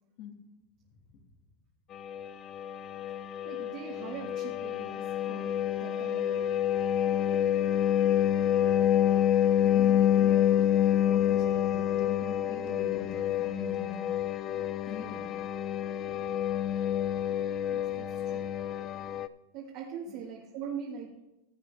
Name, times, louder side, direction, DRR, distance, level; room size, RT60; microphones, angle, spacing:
voice 1, 0.9-1.2 9.6-14.1 14.8-15.2, left 5 dB, 45° left, 3 dB, 2.0 m, -44 dB
sound 1, 1.9-19.3, left 10 dB, 25° left, 0.3 m, -28 dB
voice 2, 3.4-6.5 7.3-7.6 17.7-18.7 19.5-21.2, right 7 dB, 45° right, -2 dB, 1.7 m, -42 dB
15.5 x 8.0 x 3.4 m, 0.95 s
supercardioid pair, 155°, 0 cm